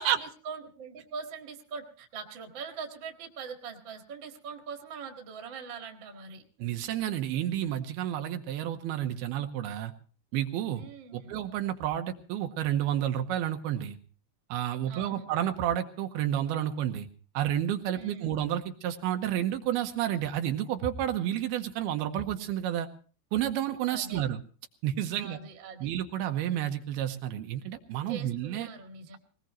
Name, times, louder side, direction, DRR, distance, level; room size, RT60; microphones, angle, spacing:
voice 1, 0.0-6.4 10.7-11.3 14.9-15.3 17.9-18.4 23.9-24.3 25.2-25.9 28.1-29.2, right 5 dB, 40° right, 3 dB, 1.9 m, -42 dB
voice 2, 6.6-9.9 10.3-10.8 11.1-14.0 14.5-17.1 17.3-22.9 23.3-24.4 24.8-25.4 25.8-28.7, right 11 dB, 80° right, 6 dB, 2.8 m, -30 dB
20.5 x 19.5 x 3.1 m, 0.39 s
omnidirectional pair, 4.6 m